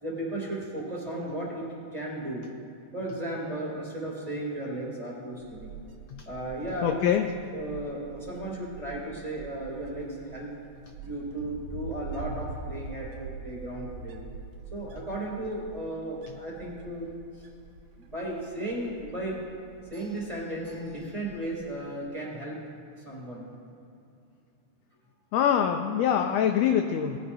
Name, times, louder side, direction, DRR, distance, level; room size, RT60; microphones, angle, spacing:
voice 1, 0.0-2.4 2.9-5.8 6.3-7.1 7.5-10.5 11.0-14.2 14.7-17.1 17.3-17.4 18.0-19.4 19.9-22.6 23.0-23.4, right 1 dB, 15° right, -5 dB, 2.4 m, -35 dB
Wind, 5.3-21.6, right 4 dB, 85° right, 2.4 m, -44 dB
voice 2, 6.8-7.3 25.3-27.2, left 9 dB, 80° left, 5 dB, 1.5 m, -24 dB
19.0 x 9.6 x 2.7 m, 2.7 s
omnidirectional pair, 3.4 m